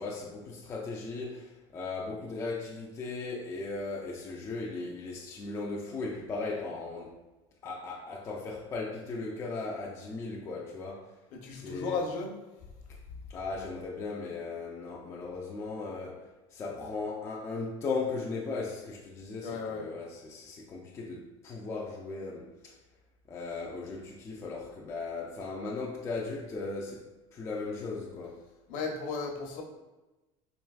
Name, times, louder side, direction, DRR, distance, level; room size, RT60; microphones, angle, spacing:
voice 1, 0.0-7.1 7.6-11.1 11.5-12.0 13.3-16.2 16.5-22.7 23.3-27.0 27.3-28.4, left 3 dB, 20° left, -2 dB, 0.3 m, -37 dB
voice 2, 11.3-12.3 19.4-19.9 28.7-29.6, left 4 dB, 55° left, 1 dB, 0.7 m, -35 dB
4.5 x 3.0 x 2.3 m, 1.1 s
cardioid pair, 155°, 16 cm